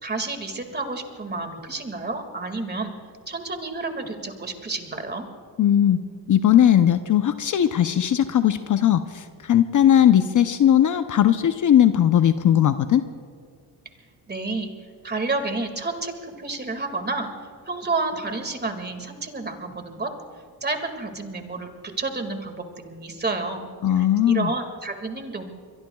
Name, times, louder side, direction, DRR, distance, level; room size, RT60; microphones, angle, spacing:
voice 1, 0.0-2.9 3.3-5.3 14.3-14.7 15.0-17.3 17.7-20.1 20.6-25.5, right 3 dB, 25° right, 5 dB, 2.1 m, -30 dB
voice 2, 5.6-6.0 6.3-13.0 23.8-24.5, left 10 dB, 45° left, 10 dB, 0.7 m, -18 dB
25.0 x 22.0 x 2.3 m, 2.1 s
cardioid pair, 80°, 42 cm